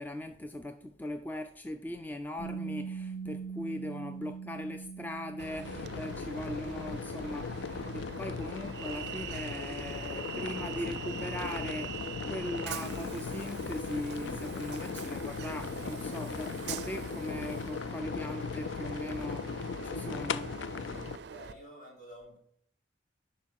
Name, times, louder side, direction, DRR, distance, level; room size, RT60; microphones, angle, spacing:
voice 1, 0.0-11.9 12.2-20.5, left 1 dB, 10° left, 6 dB, 0.4 m, -40 dB
Bass guitar, 2.4-8.6, right 5 dB, 35° left, 1.8 m, -43 dB
Train, 5.4-21.5, right 7 dB, 60° right, 0.4 m, -44 dB
sound 1, 5.6-21.2, left 5 dB, 75° left, 0.4 m, -38 dB
voice 2, 21.2-22.4, equal, 60° left, -3 dB, 3.6 m, -51 dB
11.0 x 4.3 x 4.7 m, 0.62 s
head